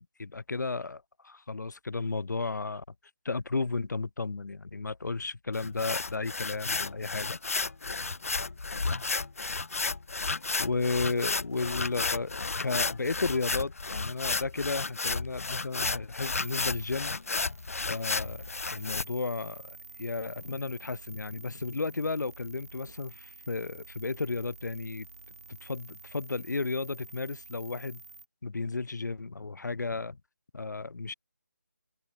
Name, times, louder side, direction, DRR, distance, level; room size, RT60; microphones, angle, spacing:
voice 1, 0.0-2.8 3.2-7.4 10.6-12.3 12.6-17.2 17.9-18.4 18.7-25.1 25.6-28.0 28.4-30.2 30.5-31.1, left 3 dB, 85° left, 0.5 m, -33 dB
sound 1, 5.5-19.0, left 4 dB, 55° left, 0.8 m, -32 dB
sound 2, 16.2-28.2, right 3 dB, 60° right, 6.8 m, -49 dB
figure-of-eight pair, 170°, 9 cm